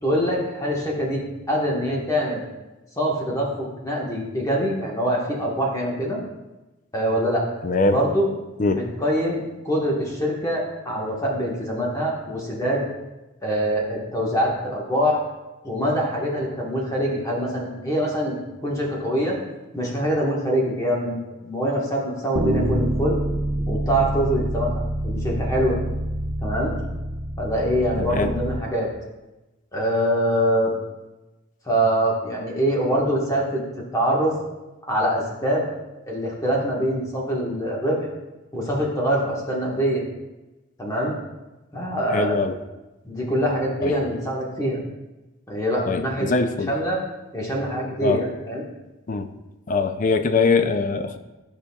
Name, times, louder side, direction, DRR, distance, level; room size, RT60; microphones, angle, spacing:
voice 1, 0.0-2.4 3.0-6.2 6.9-7.5 7.8-8.3 8.7-12.8 13.4-15.2 15.6-18.4 18.6-19.4 19.7-23.2 23.7-25.8 26.4-26.8 27.4-28.9 29.7-30.7 31.6-33.6 33.9-34.3 34.9-35.7 36.1-38.0 38.5-40.0 40.8-41.2 41.7-42.4 43.0-44.8 45.5-46.3 46.7-47.0 47.3-48.7, equal, 15° left, -3 dB, 1.3 m, -24 dB
voice 2, 7.6-8.0 8.6-8.8 28.0-28.3 42.1-42.6 43.8-43.9 45.9-46.7 48.0-48.2 49.1-49.3 49.7-51.2, left 3 dB, 40° left, 9 dB, 0.4 m, -22 dB
Bass guitar, 22.4-28.6, right 1 dB, 70° right, 0.8 m, -26 dB
12.5 x 5.0 x 2.3 m, 1.1 s
head